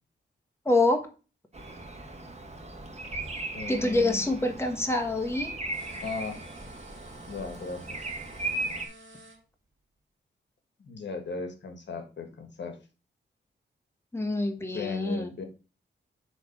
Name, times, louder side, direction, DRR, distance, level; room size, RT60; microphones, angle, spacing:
voice 1, 0.6-1.1 3.7-5.5 14.1-15.3, left 2 dB, 15° left, 4 dB, 1.4 m, -26 dB
Bird vocalization bird call bird song, 1.5-8.9, right 2 dB, 35° right, 1.7 m, -37 dB
voice 2, 3.5-4.2 6.0-6.4 7.3-8.0 10.8-12.8 14.7-15.4, left 4 dB, 65° left, 6 dB, 1.5 m, -36 dB
sound 1, 5.7-9.4, right 2 dB, 85° right, 2.5 m, -52 dB
7.2 x 3.5 x 5.8 m, 0.32 s
wide cardioid pair, 105°, 20 cm